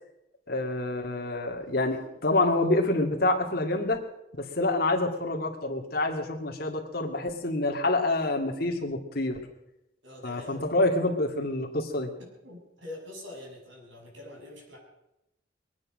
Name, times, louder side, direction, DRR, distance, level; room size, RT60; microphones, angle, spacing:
voice 1, 0.5-4.0 4.4-9.4 10.2-12.1, left 2 dB, 55° left, 2 dB, 2.3 m, -27 dB
voice 2, 10.0-10.7 12.2-14.8, left 1 dB, 85° right, -1 dB, 6.5 m, -45 dB
22.5 x 9.7 x 6.4 m, 0.88 s
head